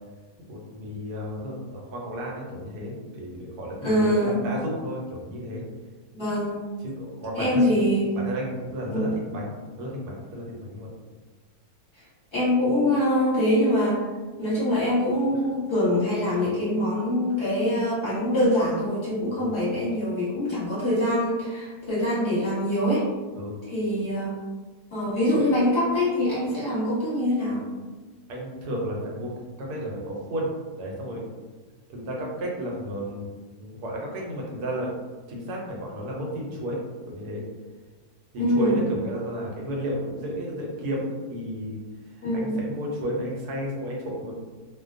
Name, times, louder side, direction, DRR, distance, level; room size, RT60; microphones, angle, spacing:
voice 1, 0.5-5.6 6.8-7.7 8.1-10.9 19.4-19.6 23.3-23.6 28.3-29.3 29.6-31.2 31.9-33.3 33.6-34.9 35.3-36.8 37.1-37.4 38.3-41.8 42.0-44.3, equal, 85° right, -2 dB, 1.1 m, -32 dB
voice 2, 3.8-4.4 6.1-6.6 7.3-8.1 8.9-9.1 12.3-14.0 14.4-23.1 23.6-24.3 24.9-27.6 38.4-38.8 42.2-42.6, left 1 dB, 20° left, -10 dB, 1.0 m, -24 dB
2.5 x 2.2 x 2.4 m, 1.3 s
omnidirectional pair, 1.6 m